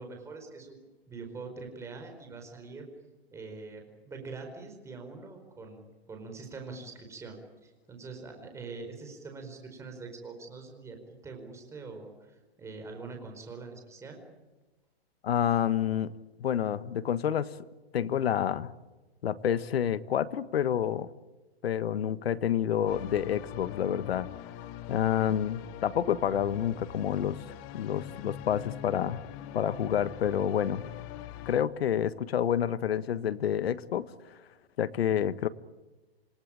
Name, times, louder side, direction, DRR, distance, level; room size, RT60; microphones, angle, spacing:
voice 1, 0.0-2.9 3.3-11.0 11.2-12.1 12.6-14.2, right 4 dB, 10° right, 4 dB, 4.7 m, -44 dB
voice 2, 15.2-16.1 16.4-17.5 17.9-18.7 19.2-21.1 21.6-24.3 24.9-27.4 27.7-29.2 29.5-30.8 31.4-34.1 34.8-35.5, left 9 dB, 70° left, 14 dB, 1.5 m, -28 dB
sound 1, 22.9-31.6, left 12 dB, 25° left, 1.1 m, -43 dB
28.0 x 19.0 x 8.8 m, 1.2 s
hypercardioid pair, 165°, 31 cm